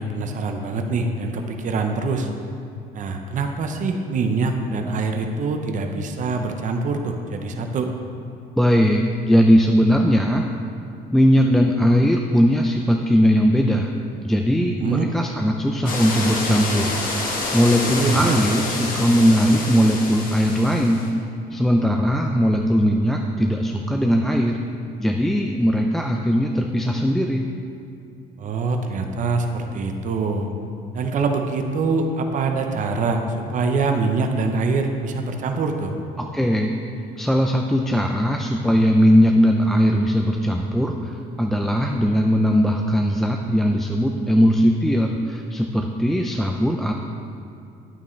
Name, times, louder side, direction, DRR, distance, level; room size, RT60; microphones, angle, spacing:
voice 1, 0.0-2.3 2.9-7.9 14.6-15.1 17.8-18.4 28.4-30.5 30.9-35.9, right 3 dB, 50° right, 4 dB, 0.7 m, -24 dB
voice 2, 8.6-10.5 11.1-13.9 14.2-21.0 21.5-24.6 25.0-27.4 36.3-36.8 37.2-47.0, equal, ahead, 1 dB, 0.4 m, -19 dB
sound 1, 15.8-21.1, left 2 dB, 55° left, 1.6 m, -27 dB
9.1 x 8.7 x 3.2 m, 2.6 s
cardioid pair, 110°, 17 cm